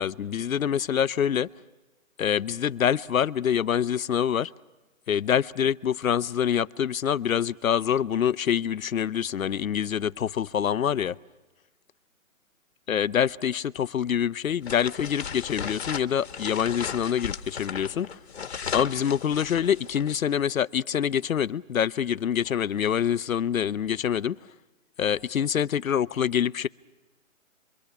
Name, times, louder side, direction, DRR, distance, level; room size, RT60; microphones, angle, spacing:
voice 1, 0.0-1.5 2.2-4.5 5.1-11.2 12.9-18.1 18.7-24.4 25.0-26.7, left 8 dB, 80° left, 0.8 m, -25 dB
sound 1, 14.6-20.1, left 6 dB, 50° left, 1.3 m, -36 dB
29.0 x 24.0 x 5.9 m
hypercardioid pair, 175°, 41 cm